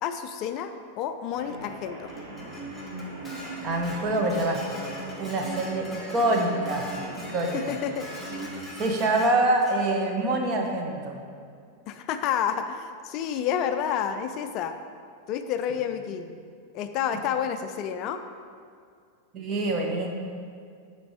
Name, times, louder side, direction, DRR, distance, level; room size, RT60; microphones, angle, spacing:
voice 1, 0.0-2.1 7.5-8.1 11.9-14.8 15.3-16.2 16.7-18.2, left 8 dB, 40° left, 8 dB, 0.3 m, -29 dB
sound 1, 1.3-8.7, right 1 dB, 50° right, 2.0 m, -39 dB
Dishes pots and pans, 2.1-9.8, left 1 dB, ahead, 1.7 m, -43 dB
voice 2, 3.6-4.9 5.2-6.9 7.3-7.7 8.8-11.2 19.3-20.1, right 2 dB, 30° right, 2 dB, 1.1 m, -25 dB
9.1 x 4.5 x 5.0 m, 2.3 s
figure-of-eight pair, 90°, 0 cm